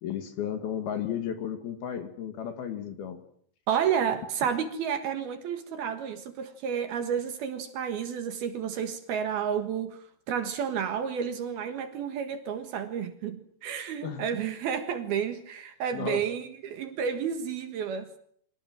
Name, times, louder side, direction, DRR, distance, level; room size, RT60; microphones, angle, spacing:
voice 1, 0.0-3.2 14.0-14.3 15.9-16.2, left 9 dB, 60° left, 3.2 m, -34 dB
voice 2, 3.7-18.2, right 8 dB, 60° right, 3.1 m, -31 dB
30.0 x 24.5 x 7.5 m
omnidirectional pair, 5.5 m